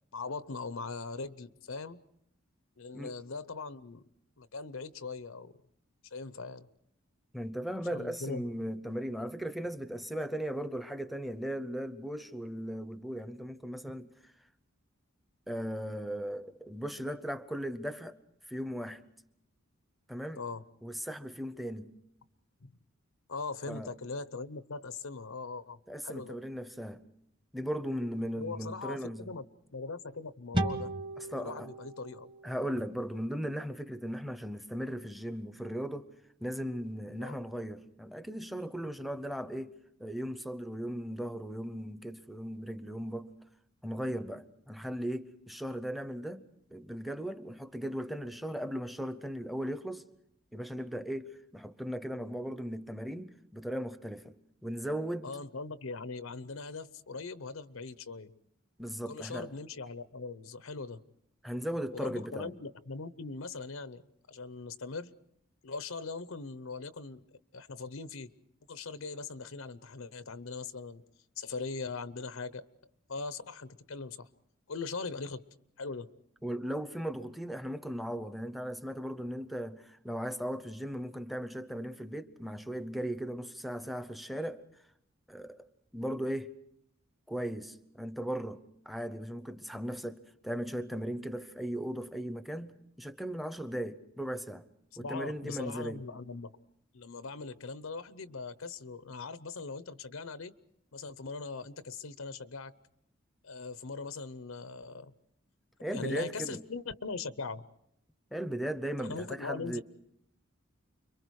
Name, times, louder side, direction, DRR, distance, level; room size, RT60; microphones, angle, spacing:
voice 1, 0.1-2.0 2.8-4.1 4.4-5.5 6.1-6.7 7.9-8.5 20.3-20.6 22.6-22.7 23.3-25.8 26.0-26.4 28.3-29.4 29.7-30.9 31.2-32.3 37.2-37.4 55.2-58.3 59.1-61.0 61.9-64.0 64.3-65.1 65.6-67.2 67.5-68.3 68.7-71.0 71.4-72.6 73.1-74.3 74.7-75.4 75.8-76.1 95.0-96.5 96.9-100.5 100.9-102.7 103.4-105.1 105.9-107.6 109.0-109.8, left 4 dB, 80° left, 0.8 m, -40 dB
voice 2, 7.3-14.1 15.5-18.2 18.5-19.0 20.1-20.4 20.8-21.9 23.7-23.9 25.9-27.0 27.5-29.3 31.2-31.7 32.4-36.1 36.4-39.7 40.0-43.3 43.8-46.4 46.7-50.0 50.5-54.3 54.6-55.3 58.8-59.5 61.4-62.5 76.4-84.6 85.3-85.6 85.9-86.5 87.3-94.7 95.0-96.0 105.8-106.6 108.3-109.8, equal, ahead, 0.8 m, -37 dB
sound 1, 30.5-33.9, right 1 dB, 25° right, 1.4 m, -37 dB
30.0 x 23.5 x 4.8 m
head